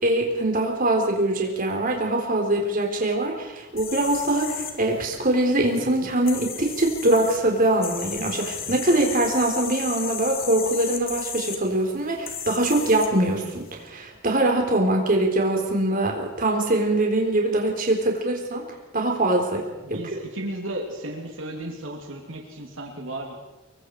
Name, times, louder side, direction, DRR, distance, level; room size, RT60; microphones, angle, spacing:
voice 1, 0.0-18.6 18.9-19.6 19.9-20.0, right 1 dB, 45° right, 1 dB, 4.0 m, -23 dB
sound 1, 3.8-13.8, left 7 dB, 50° left, 2.5 m, -36 dB
voice 2, 19.8-23.3, right 1 dB, 80° right, 1 dB, 3.0 m, -34 dB
25.0 x 23.0 x 4.8 m, 1.1 s
head